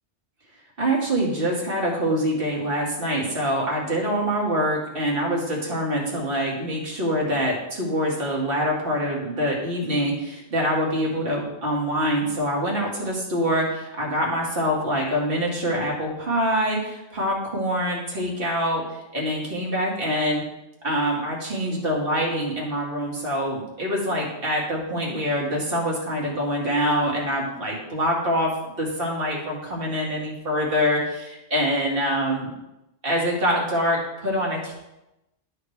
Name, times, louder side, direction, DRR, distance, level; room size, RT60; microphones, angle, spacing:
voice 1, 0.8-18.8 19.1-20.4 20.8-32.5 33.0-34.7, equal, 50° right, -3 dB, 2.1 m, -25 dB
12.0 x 4.9 x 3.2 m, 0.92 s
omnidirectional pair, 1.2 m